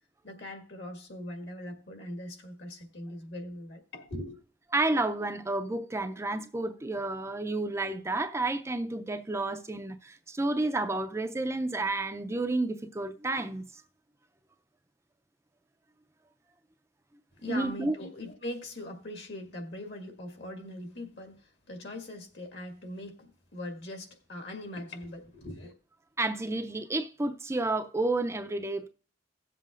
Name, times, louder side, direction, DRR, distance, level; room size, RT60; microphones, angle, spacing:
voice 1, 0.2-4.4 17.4-25.7, left 1 dB, 65° left, 1.9 m, -41 dB
voice 2, 4.7-13.6 17.5-17.9 26.2-28.9, right 2 dB, 15° right, 0.4 m, -30 dB
17.5 x 7.5 x 2.4 m
head